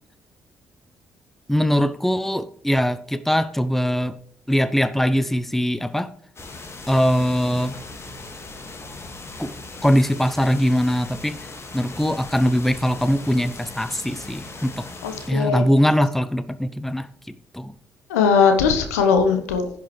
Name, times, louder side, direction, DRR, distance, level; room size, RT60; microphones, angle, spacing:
voice 1, 1.5-4.2 4.5-6.1 6.9-7.8 9.4-9.5 9.8-11.4 11.7-14.9 15.3-17.1 17.5-17.7, equal, 5° left, 0.7 m, -21 dB
sound 1, 6.4-15.3, left 3 dB, 30° left, 1.8 m, -39 dB
voice 2, 15.0-15.7 18.1-19.7, left 5 dB, 75° left, 1.1 m, -19 dB
16.0 x 5.9 x 3.3 m
figure-of-eight pair, 45°, 8 cm